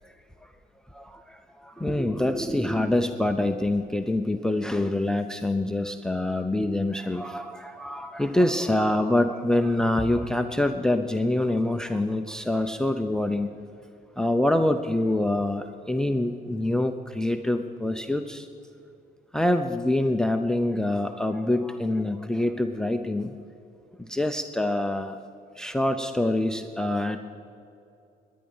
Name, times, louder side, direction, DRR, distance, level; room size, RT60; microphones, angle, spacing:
voice 1, 0.9-13.5 14.2-18.5 19.3-23.4 24.0-25.2 25.6-27.2, left 1 dB, 5° left, 8 dB, 0.6 m, -25 dB
18.5 x 10.5 x 5.5 m, 2.6 s
cardioid pair, 110°, 17 cm